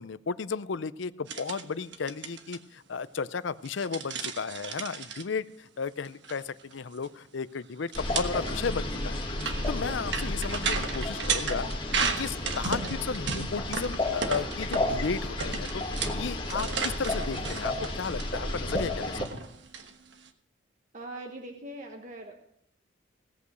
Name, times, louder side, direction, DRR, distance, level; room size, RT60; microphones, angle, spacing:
voice 1, 0.0-9.2 9.7-11.7 12.0-15.8 16.1-19.2, left 5 dB, 65° left, 16 dB, 0.5 m, -34 dB
sound 1, 1.3-1.6 1.9-2.6 3.6-5.2 6.0-6.3 6.6-6.7 7.0-7.1 7.9-15.1 15.4-20.3, right 5 dB, 60° right, 1.2 m, -34 dB
sound 2, 7.9-19.3, left 1 dB, 25° left, 1.7 m, -32 dB
voice 2, 20.9-22.4, right 1 dB, 40° right, 2 dB, 1.2 m, -41 dB
17.5 x 8.4 x 6.2 m, 0.74 s
head